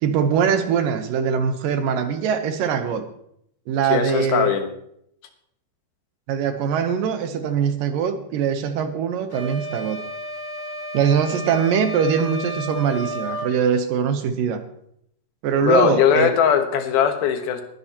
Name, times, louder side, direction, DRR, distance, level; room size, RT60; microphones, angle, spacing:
voice 1, 0.0-3.1 3.7-4.6 6.3-10.0 10.9-14.6 15.4-16.3, right 7 dB, 75° right, 8 dB, 2.4 m, -22 dB
voice 2, 3.9-4.7 15.6-17.6, left 8 dB, 80° left, 7 dB, 3.0 m, -19 dB
sound 1, 9.3-13.5, equal, 35° left, 5.1 m, -32 dB
20.5 x 10.0 x 2.9 m, 0.73 s
omnidirectional pair, 4.3 m